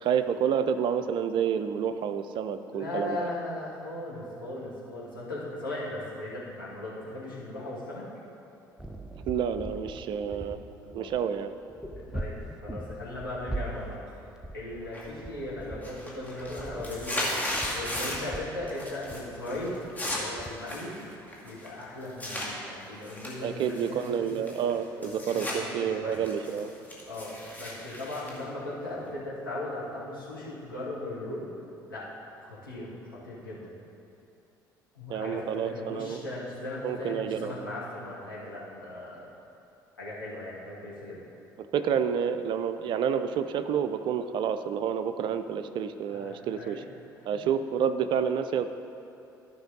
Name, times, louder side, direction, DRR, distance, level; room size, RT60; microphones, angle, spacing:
voice 1, 0.0-3.3 9.3-10.6 10.9-11.5 23.4-26.7 35.1-36.2 36.8-37.8 41.7-46.8 47.3-48.7, right 7 dB, 45° right, 10 dB, 0.5 m, -29 dB
voice 2, 2.7-8.0 10.3-10.4 10.8-11.1 12.0-14.0 14.5-19.8 20.0-20.9 21.4-24.3 25.0-26.2 27.1-31.5 31.9-32.0 32.4-32.9 33.2-33.7 34.9-39.3 40.0-41.2 46.1-46.8, left 1 dB, 85° left, -9 dB, 2.1 m, -38 dB
sound 1, 8.8-20.5, right 1 dB, 5° right, 0.7 m, -41 dB
sound 2, 14.9-15.4 15.7-18.4 18.7-19.2 19.5-22.5 23.0-25.6 25.9-29.1, left 1 dB, 15° left, 2.1 m, -36 dB
14.0 x 5.4 x 3.9 m, 2.9 s
figure-of-eight pair, 55°, 11 cm